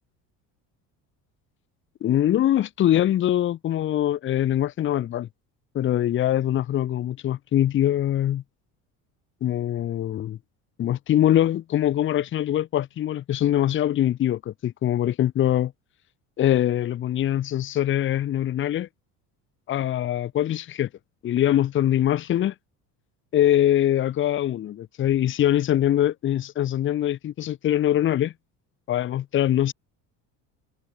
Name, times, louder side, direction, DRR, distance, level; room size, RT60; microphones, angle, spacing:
voice 1, 2.0-5.3 5.7-8.4 9.4-10.4 10.8-15.7 16.4-18.9 19.7-20.9 21.2-22.5 23.3-28.3 28.9-29.7, left 12 dB, 35° left, 1.7 m, -23 dB
cardioid pair, 175°, 35 cm